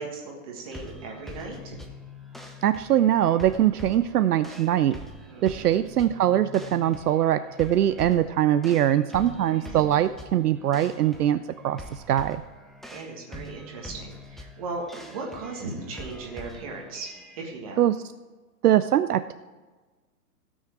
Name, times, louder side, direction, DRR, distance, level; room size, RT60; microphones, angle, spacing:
voice 1, 0.0-1.8 5.3-5.8 9.3-9.8 12.9-17.1 17.4-17.8, right 3 dB, 20° right, -1 dB, 1.7 m, -37 dB
sound 1, 0.7-17.4, left 1 dB, ahead, 0.3 m, -44 dB
voice 2, 2.6-5.0 5.4-12.4 17.8-18.0 18.6-19.3, right 11 dB, 70° right, 12 dB, 0.6 m, -22 dB
16.5 x 6.4 x 4.7 m, 1.3 s
hypercardioid pair, 180°, 48 cm